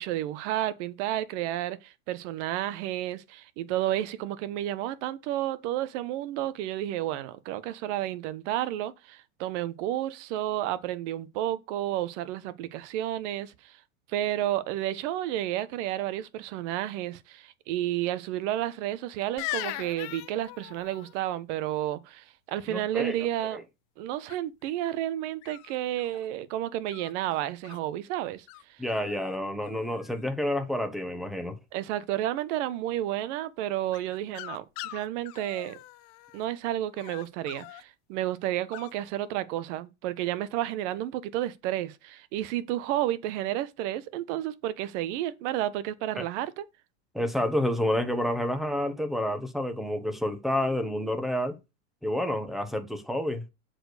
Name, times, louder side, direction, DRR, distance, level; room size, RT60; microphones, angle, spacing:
voice 1, 0.0-13.8 14.1-23.6 24.0-28.4 31.7-35.8 36.3-46.6, right 13 dB, 55° right, 1.2 m, -31 dB
sound 1, 19.4-21.1 24.3-24.7 25.4-26.3 26.9-27.8 28.5-28.6 28.9-29.4 29.6-30.2 33.9-36.4 37.0-37.8 38.7-38.9, left 18 dB, 40° left, 0.8 m, -41 dB
voice 2, 22.7-23.6 28.8-31.6 46.2-46.3 47.1-51.6 52.0-53.4, left 1 dB, ahead, 1.3 m, -29 dB
7.7 x 4.5 x 6.7 m
supercardioid pair, 135°, 43 cm